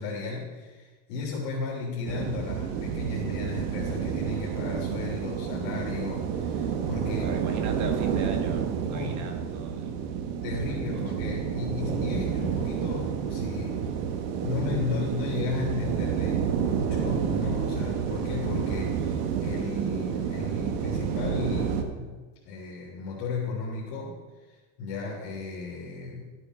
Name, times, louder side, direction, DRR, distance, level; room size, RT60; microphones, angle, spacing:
voice 1, 0.0-7.3 8.1-8.2 8.8-9.2 9.8-10.0 10.4-13.8 14.4-22.2 22.4-24.2 24.5-26.3, left 4 dB, 65° left, -5 dB, 3.2 m, -34 dB
sound 1, 2.1-21.8, right 7 dB, 85° right, 1.4 m, -29 dB
voice 2, 7.2-10.2 10.6-11.1, right 5 dB, 40° right, 4 dB, 1.7 m, -38 dB
13.5 x 8.3 x 4.9 m, 1.3 s
cardioid pair, 155°, 46 cm